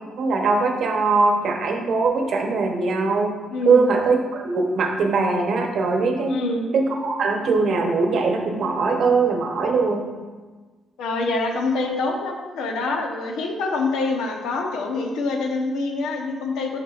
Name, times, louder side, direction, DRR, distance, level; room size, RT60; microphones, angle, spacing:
voice 1, 0.2-3.3 3.6-6.4 6.7-10.1, right 4 dB, 65° right, 3 dB, 0.8 m, -21 dB
voice 2, 3.5-3.9 6.3-6.7 11.0-16.8, left 3 dB, 85° left, 2 dB, 0.9 m, -25 dB
7.1 x 5.6 x 2.4 m, 1.4 s
cardioid pair, 90°, 0 cm